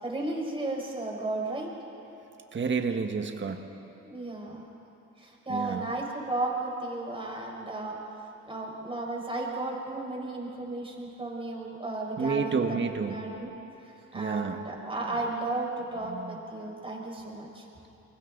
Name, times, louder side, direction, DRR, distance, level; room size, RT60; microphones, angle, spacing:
voice 1, 0.0-1.7 4.0-4.6 5.2-8.0 8.5-13.5 14.1-17.6, right 2 dB, 20° right, -2 dB, 5.4 m, -34 dB
voice 2, 2.5-3.6 5.5-5.8 12.2-13.2 14.1-14.6 16.1-16.4, right 5 dB, 40° right, 5 dB, 1.6 m, -29 dB
29.5 x 23.0 x 4.0 m, 3.0 s
cardioid pair, 90°, 30 cm